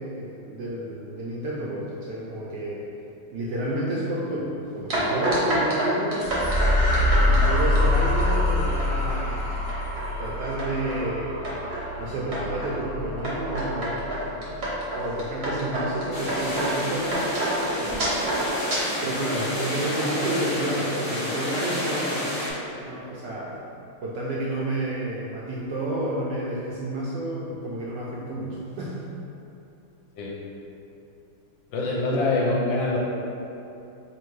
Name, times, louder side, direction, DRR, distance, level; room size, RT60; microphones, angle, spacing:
voice 1, 0.0-2.8 3.3-6.3 7.3-9.5 10.0-11.4 12.0-18.1 19.0-23.6 24.0-29.0 32.0-32.2, right 1 dB, 75° right, -5 dB, 1.0 m, -30 dB
sound 1, 4.9-8.4 8.8-9.2 9.6-10.1 10.6-11.0 11.4-11.8 12.3-12.7 13.2-18.8, right 1 dB, 50° right, 0.7 m, -28 dB
sound 2, 6.2-14.8, left 1 dB, 50° left, 0.6 m, -25 dB
sound 3, 16.1-22.5, left 1 dB, 35° left, 1.1 m, -30 dB
voice 2, 31.7-33.0, left 2 dB, 75° left, -4 dB, 1.2 m, -24 dB
3.4 x 2.6 x 4.5 m, 2.8 s
omnidirectional pair, 2.2 m